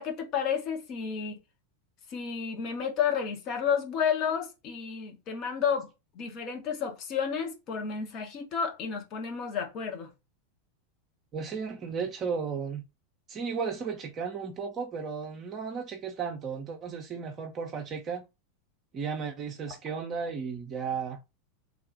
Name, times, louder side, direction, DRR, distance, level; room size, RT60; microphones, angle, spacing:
voice 1, 0.0-1.4 2.1-5.9 6.1-10.1, left 7 dB, 40° left, 0.9 m, -31 dB
voice 2, 11.3-12.8 13.3-18.2 18.9-21.2, right 6 dB, 30° right, 0.6 m, -34 dB
3.5 x 2.3 x 3.7 m
figure-of-eight pair, 85°, 0 cm